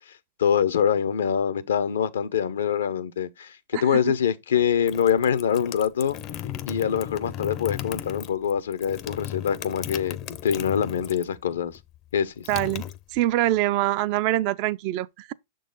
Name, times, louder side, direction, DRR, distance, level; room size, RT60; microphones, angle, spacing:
voice 1, 0.1-6.2 6.7-11.8 12.1-12.5, left 8 dB, 85° left, 0.6 m, -25 dB
voice 2, 3.7-4.1 12.5-12.8 13.1-15.3, right 15 dB, 50° right, 0.4 m, -24 dB
sound 1, 4.6-11.4 11.7-13.5, left 11 dB, 40° left, 0.5 m, -36 dB
6.4 x 3.9 x 3.9 m
hypercardioid pair, 115°, 0 cm